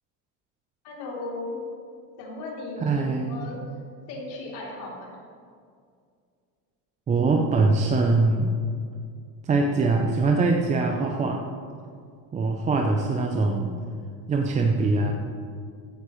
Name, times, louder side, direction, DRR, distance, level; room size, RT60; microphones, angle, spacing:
voice 1, 0.8-1.6 2.2-3.6 4.1-5.2, left 2 dB, 50° left, -3 dB, 3.3 m, -36 dB
voice 2, 2.8-3.5 7.1-8.5 9.4-11.4 12.3-13.8 14.3-15.1, right 3 dB, 15° right, 2 dB, 0.5 m, -23 dB
15.5 x 9.5 x 3.2 m, 2.2 s
supercardioid pair, 140°, 48 cm